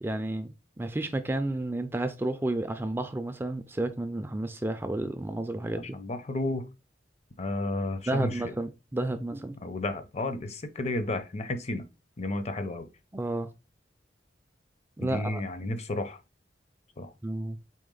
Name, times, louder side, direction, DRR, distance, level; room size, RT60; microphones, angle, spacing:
voice 1, 0.0-6.0 8.1-9.6 13.1-13.5 15.0-15.4 17.2-17.6, right 1 dB, 15° right, 0.3 m, -31 dB
voice 2, 5.9-6.7 7.4-8.5 9.6-11.8 12.2-12.9 15.0-16.2 17.0-17.1, left 2 dB, 40° left, 0.6 m, -32 dB
4.2 x 3.3 x 3.8 m
head